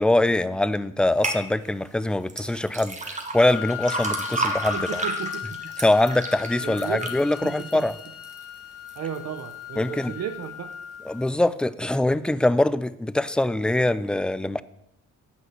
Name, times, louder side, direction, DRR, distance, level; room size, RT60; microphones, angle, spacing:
voice 1, 0.0-5.0 5.8-8.0 9.8-10.2 11.0-14.6, left 1 dB, 5° left, 16 dB, 0.4 m, -23 dB
sound 1, 1.2-1.4 2.3-8.4 8.9-9.4 9.9-10.0, right 3 dB, 25° right, 1.6 m, -32 dB
Wind instrument woodwind instrument, 3.3-11.3, left 11 dB, 50° left, 0.9 m, -36 dB
voice 2, 4.7-5.7 6.6-7.7 9.0-10.7, right 9 dB, 60° right, 8 dB, 0.8 m, -34 dB
9.8 x 5.6 x 7.7 m, 0.81 s
cardioid pair, 90°, 30 cm